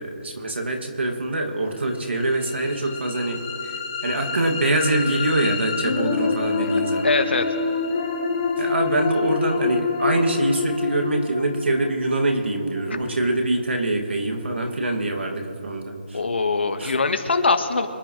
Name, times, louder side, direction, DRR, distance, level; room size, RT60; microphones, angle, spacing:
voice 1, 0.0-3.8 4.0-7.1 8.6-16.2 16.8-16.9, right 2 dB, 85° right, 3 dB, 2.5 m, -24 dB
sound 1, 2.0-14.0, left 5 dB, 25° left, 1.2 m, -27 dB
voice 2, 7.0-7.5 16.1-17.9, left 3 dB, 80° left, 6 dB, 1.7 m, -22 dB
26.0 x 10.5 x 3.3 m, 2.7 s
hypercardioid pair, 170°, 6 cm